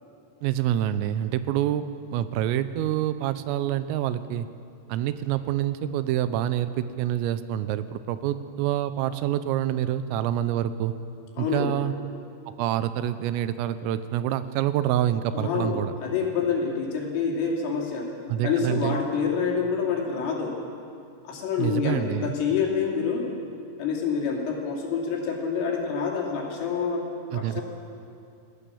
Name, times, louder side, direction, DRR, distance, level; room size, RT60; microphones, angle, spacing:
voice 1, 0.4-4.5 4.9-10.9 11.4-11.9 12.6-15.9 18.3-19.0 21.6-22.4 27.3-27.6, right 11 dB, 85° right, 12 dB, 3.4 m, -27 dB
voice 2, 11.4-11.7 15.3-18.1 18.4-20.6 21.3-23.3 23.8-27.1 27.3-27.6, left 6 dB, 70° left, -1 dB, 5.5 m, -27 dB
27.5 x 17.5 x 7.1 m, 2.5 s
omnidirectional pair, 5.9 m